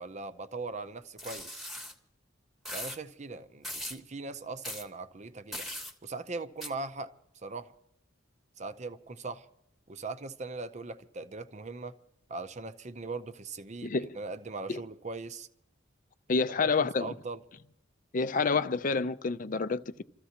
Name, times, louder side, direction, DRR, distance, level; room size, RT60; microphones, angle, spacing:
voice 1, 0.0-1.7 2.7-5.7 6.0-7.7 8.6-9.5 9.9-12.0 12.3-15.5 16.3-17.4, right 3 dB, 35° right, 0.6 m, -40 dB
sound 1, 1.2-1.9 2.6-3.0 3.6-4.0 4.6-4.8 5.5-5.9 6.6-6.7, left 1 dB, ahead, 1.0 m, -39 dB
voice 2, 13.8-14.1 14.7-14.8 16.3-17.1 18.1-20.0, left 4 dB, 45° left, 0.5 m, -28 dB
28.5 x 14.0 x 2.9 m
head